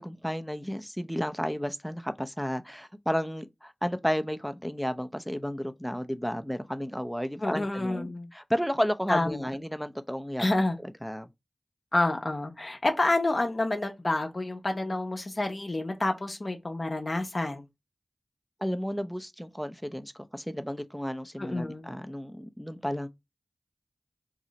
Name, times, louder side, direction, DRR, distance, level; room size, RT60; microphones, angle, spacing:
voice 1, 0.0-10.5 11.0-11.3 18.6-23.1, equal, ahead, 0.4 m, -32 dB
voice 2, 7.4-8.3 9.1-9.5 10.4-10.8 11.9-17.7 21.4-21.9, left 2 dB, 45° left, 0.6 m, -28 dB
2.7 x 2.0 x 3.8 m
cardioid pair, 40°, 0 cm